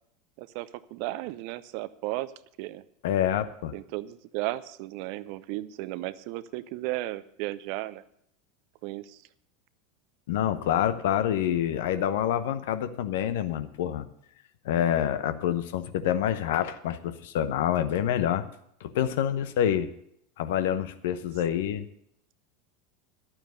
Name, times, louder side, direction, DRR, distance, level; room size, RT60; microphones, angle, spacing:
voice 1, 0.4-2.3 2.6-2.8 3.7-8.0 8.8-9.2, right 17 dB, 55° right, 17 dB, 0.5 m, -34 dB
voice 2, 3.0-3.7 10.3-14.1 14.6-18.4 18.8-19.9 20.4-21.9, left 10 dB, 65° left, 12 dB, 0.8 m, -27 dB
11.5 x 9.0 x 6.5 m, 0.72 s
figure-of-eight pair, 80°, 0 cm